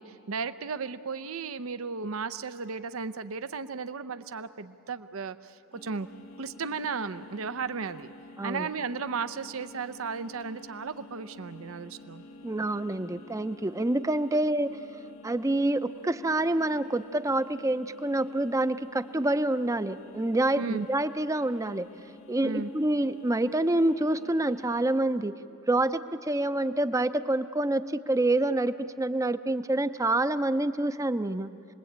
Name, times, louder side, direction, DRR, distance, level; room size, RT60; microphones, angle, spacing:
voice 1, 0.0-6.1 6.4-8.1 8.4-12.2 20.6-20.9 22.4-22.7, right 5 dB, 75° right, 11 dB, 0.7 m, -35 dB
sound 1, 5.7-25.0, left 2 dB, 85° left, 1.4 m, -50 dB
voice 2, 12.4-14.8 15.2-21.9 22.3-25.3 25.7-31.5, right 1 dB, 15° right, 12 dB, 0.6 m, -27 dB
27.0 x 21.0 x 8.7 m, 2.6 s
head